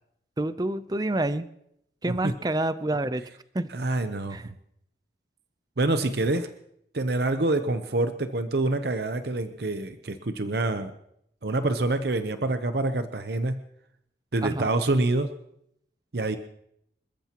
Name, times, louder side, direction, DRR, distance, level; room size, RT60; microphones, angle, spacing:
voice 1, 0.4-1.5 2.0-3.2 3.5-3.7 4.3-4.4 14.4-14.7, right 1 dB, 20° right, 13 dB, 0.5 m, -27 dB
voice 2, 3.7-4.5 5.8-6.5 6.9-10.9 11.4-13.6 14.3-15.3 16.1-16.4, right 2 dB, 65° right, 9 dB, 0.8 m, -26 dB
27.0 x 14.0 x 3.0 m, 0.74 s
head